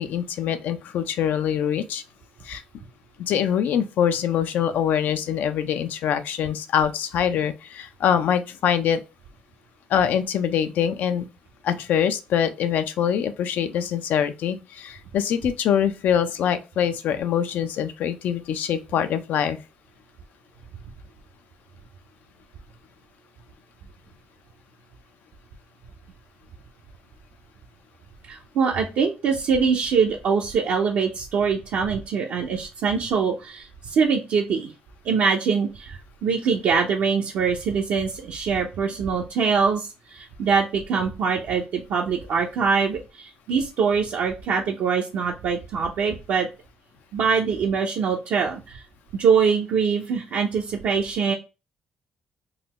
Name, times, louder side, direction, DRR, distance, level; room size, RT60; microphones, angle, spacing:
voice 1, 0.0-2.0 2.4-2.6 3.3-9.0 9.9-11.3 11.6-19.6, left 9 dB, 75° left, 0.4 m, -24 dB
voice 2, 28.3-34.7 35.0-46.5 47.1-48.8 49.1-51.3, right 5 dB, 75° right, 0.6 m, -23 dB
3.7 x 2.1 x 3.0 m
supercardioid pair, 70°, 3 cm